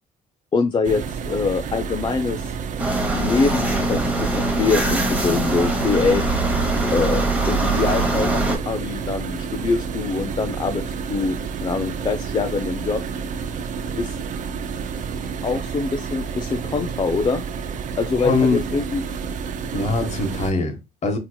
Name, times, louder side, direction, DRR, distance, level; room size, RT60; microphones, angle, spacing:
voice 1, 0.5-2.5 3.1-6.2 6.9-13.0 14.0-14.2 15.4-17.4 18.0-19.0, left 4 dB, 25° left, 0.4 m, -24 dB
sound 1, 0.8-20.5, right 6 dB, 50° right, 0.5 m, -30 dB
sound 2, 2.8-8.6, right 2 dB, 10° right, 0.9 m, -22 dB
voice 2, 18.2-18.6 19.7-21.2, left 3 dB, 45° left, 1.0 m, -22 dB
4.4 x 2.8 x 2.2 m
cardioid pair, 110°, 17 cm